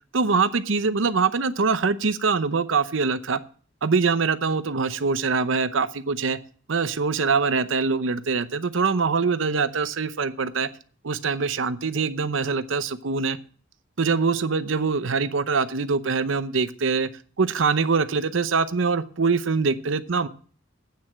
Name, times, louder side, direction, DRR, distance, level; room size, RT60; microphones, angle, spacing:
voice 1, 0.1-3.4 3.8-6.4 6.7-10.7 11.0-13.4 14.0-17.1 17.4-20.3, right 4 dB, 90° right, 13 dB, 0.7 m, -23 dB
8.7 x 7.6 x 7.4 m, 0.44 s
head